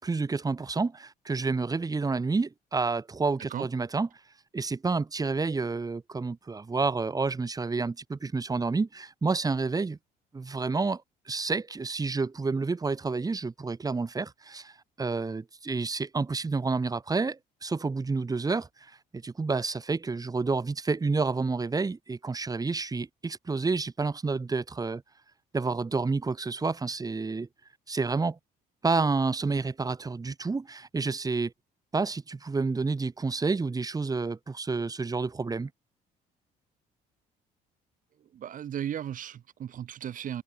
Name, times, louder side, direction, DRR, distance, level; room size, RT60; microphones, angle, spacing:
voice 1, 0.0-4.1 4.5-10.0 10.3-11.0 11.3-14.7 15.0-25.0 25.5-27.5 27.9-28.4 28.8-31.5 31.9-35.7, right 4 dB, 20° right, 3.7 m, -29 dB
voice 2, 38.3-40.4, right 10 dB, 50° right, 3.0 m, -35 dB
cardioid pair, 110°, 17 cm